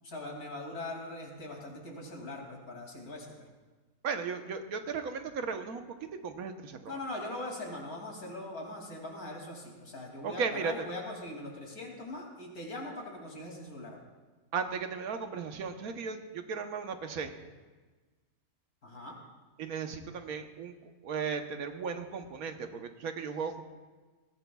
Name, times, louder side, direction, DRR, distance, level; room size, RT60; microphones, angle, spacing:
voice 1, 0.0-3.5 6.9-14.0 18.8-19.1, left 2 dB, 80° left, -1 dB, 3.1 m, -41 dB
voice 2, 4.0-5.8 6.2-7.0 10.2-10.7 14.5-17.3 19.6-20.7 21.0-23.6, right 5 dB, 80° right, 6 dB, 1.4 m, -36 dB
21.0 x 15.5 x 2.3 m, 1.3 s
omnidirectional pair, 1.5 m